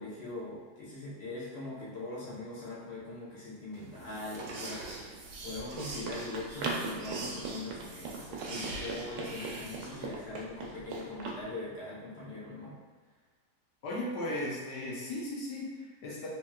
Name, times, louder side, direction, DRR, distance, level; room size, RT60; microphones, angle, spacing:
voice 1, 0.0-12.7, left 2 dB, 45° left, -8 dB, 1.0 m, -42 dB
sound 1, 3.7-10.1, right 2 dB, 70° right, 0.8 m, -43 dB
Run, 5.2-11.4, right 3 dB, 85° right, 1.2 m, -40 dB
voice 2, 13.8-16.3, left 1 dB, 85° left, -4 dB, 1.3 m, -36 dB
3.3 x 2.9 x 2.2 m, 1.4 s
omnidirectional pair, 1.7 m